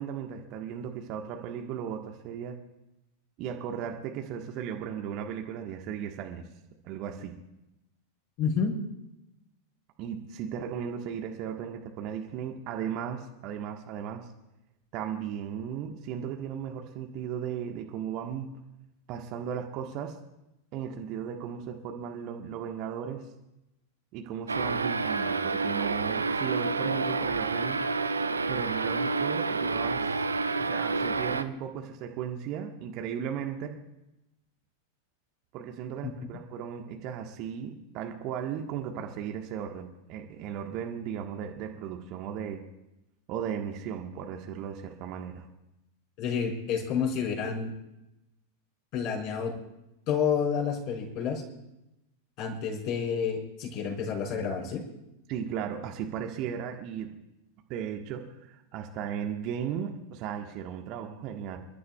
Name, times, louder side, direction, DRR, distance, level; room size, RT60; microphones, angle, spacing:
voice 1, 0.0-2.6 3.4-6.4 6.8-7.3 10.0-14.3 14.9-18.5 19.1-20.2 20.7-23.3 24.1-27.8 28.4-30.2 30.6-33.7 35.5-42.6 43.3-45.5 55.3-57.1 57.7-61.6, right 8 dB, 40° right, 3 dB, 1.4 m, -36 dB
voice 2, 8.4-8.8 36.0-36.1 46.2-47.7 48.9-49.6 50.1-51.4 52.4-54.8, left 6 dB, 40° left, -1 dB, 5.3 m, -29 dB
sound 1, 24.5-31.4, right 4 dB, 75° right, 0.6 m, -29 dB
28.5 x 12.5 x 2.4 m, 0.91 s
figure-of-eight pair, 90°, 0 cm